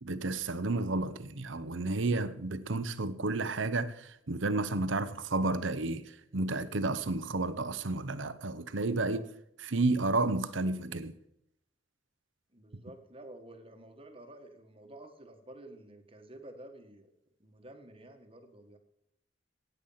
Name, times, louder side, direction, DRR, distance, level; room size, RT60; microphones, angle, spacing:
voice 1, 0.0-9.2 9.6-11.1, right 2 dB, 80° right, 0.9 m, -31 dB
voice 2, 12.5-17.1 17.4-18.8, right 1 dB, 30° right, 1.6 m, -51 dB
17.5 x 8.3 x 5.7 m
head